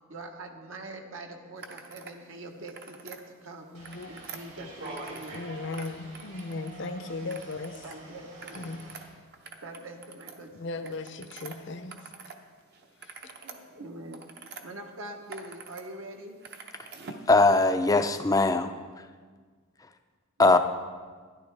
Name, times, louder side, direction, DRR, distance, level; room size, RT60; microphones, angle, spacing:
voice 1, 0.1-3.7 4.1-5.4 7.8-8.6 9.6-10.5 10.8-11.0 13.4-14.2 14.6-16.4, right 2 dB, 70° right, 3 dB, 1.1 m, -43 dB
sound 1, 1.6-2.2 2.5-3.2 3.7-5.4 5.7-6.9 7.3-8.0 8.3-12.4 12.7-14.6 15.1-15.8 16.1-17.3, right 5 dB, 50° right, 0.8 m, -46 dB
voice 2, 3.7-4.1 5.3-7.8 8.5-8.8 10.5-12.1 13.0-13.3, left 3 dB, 55° left, 9 dB, 0.6 m, -37 dB
sound 2, 3.7-9.0, right 2 dB, 85° right, 3.9 m, -46 dB
voice 3, 17.3-18.7 20.4-20.6, left 3 dB, 15° left, 8 dB, 0.4 m, -20 dB
12.5 x 10.5 x 3.4 m, 1.5 s
head